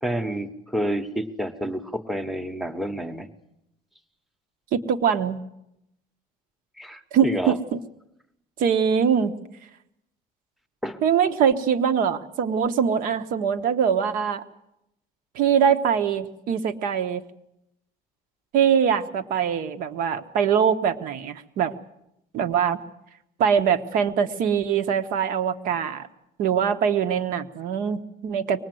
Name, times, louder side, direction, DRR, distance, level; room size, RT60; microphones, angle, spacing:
voice 1, 0.0-3.3 6.8-7.6 10.8-11.0, right 1 dB, ahead, 8 dB, 1.0 m, -29 dB
voice 2, 4.7-5.4 7.1-7.8 8.6-9.3 11.0-14.4 15.3-17.2 18.5-21.7 22.3-22.8 23.4-26.1 26.4-28.6, right 7 dB, 65° right, 10 dB, 1.3 m, -23 dB
24.0 x 20.0 x 7.8 m, 0.85 s
cardioid pair, 170°, 15 cm